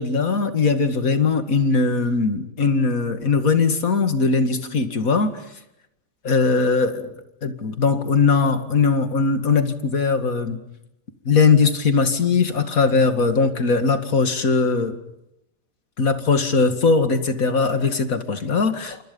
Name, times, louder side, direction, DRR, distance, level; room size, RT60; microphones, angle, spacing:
voice 1, 0.0-5.4 6.2-7.1 7.4-10.6 11.3-15.0 16.0-19.0, left 4 dB, 55° left, 8 dB, 2.5 m, -20 dB
30.0 x 28.0 x 5.5 m, 0.84 s
omnidirectional pair, 1.8 m